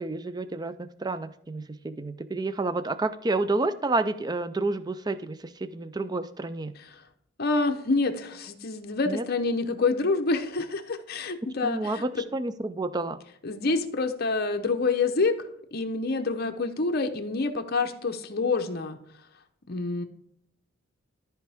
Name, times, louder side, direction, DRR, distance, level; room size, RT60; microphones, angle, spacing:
voice 1, 0.0-6.7 9.1-9.2 11.6-13.2, right 2 dB, 20° right, 12 dB, 0.4 m, -30 dB
voice 2, 7.4-12.2 13.4-19.0 19.7-20.0, left 3 dB, 50° left, 5 dB, 0.8 m, -27 dB
13.5 x 4.6 x 3.4 m, 0.69 s
head